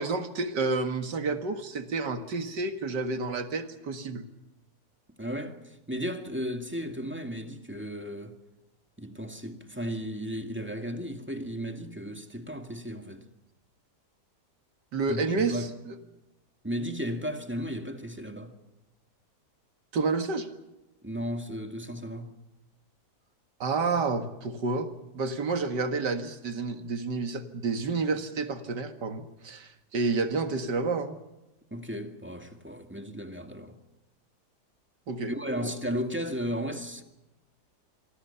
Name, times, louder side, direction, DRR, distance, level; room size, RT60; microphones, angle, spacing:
voice 1, 0.0-4.3 14.9-16.0 19.9-20.5 23.6-24.9 25.1-31.2 35.1-35.3 35.6-35.7, right 4 dB, 90° right, 2.4 m, -30 dB
voice 2, 5.2-8.4 9.0-13.2 15.1-15.7 16.6-18.5 21.0-22.3 31.7-33.8 35.3-37.0, equal, 5° right, 2.0 m, -35 dB
26.0 x 24.0 x 5.8 m
omnidirectional pair, 1.8 m